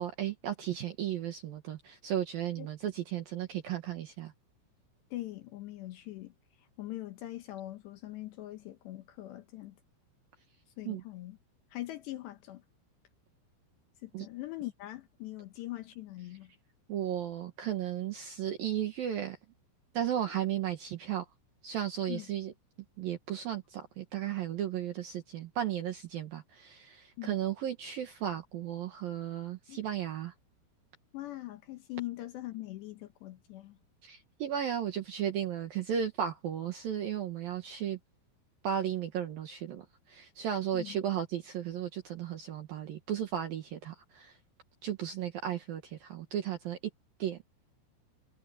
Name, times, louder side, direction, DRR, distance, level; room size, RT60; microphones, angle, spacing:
voice 1, 0.0-4.3 10.9-11.0 14.1-14.3 16.9-19.4 19.9-21.3 21.6-22.5 23.0-30.3 34.0-38.0 38.6-44.3 44.8-46.8 47.2-47.4, right 10 dB, 65° right, 2.4 m, -35 dB
voice 2, 5.1-6.3 6.8-9.8 10.8-11.4 11.7-12.6 14.0-16.5 22.1-22.3 27.2-27.4 29.7-29.8 31.1-33.8 40.7-41.0, left 16 dB, 70° left, 2.9 m, -42 dB
omnidirectional pair, 5.9 m